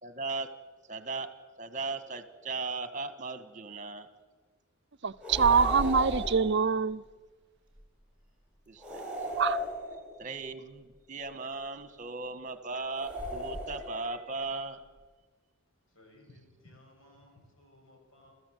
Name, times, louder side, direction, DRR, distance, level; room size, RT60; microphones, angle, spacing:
voice 1, 0.0-0.5 0.8-1.3 1.6-4.1 8.7-9.0 10.2-14.8, right 3 dB, 35° right, 1.6 m, -37 dB
voice 2, 5.0-7.0 9.4-9.6, right 5 dB, 55° right, 0.7 m, -25 dB
sound 1, 5.2-6.6 8.8-10.2 12.9-14.1, equal, 5° right, 4.9 m, -35 dB
voice 3, 15.9-18.3, left 1 dB, 75° left, 6.7 m, -58 dB
29.0 x 14.5 x 8.1 m
head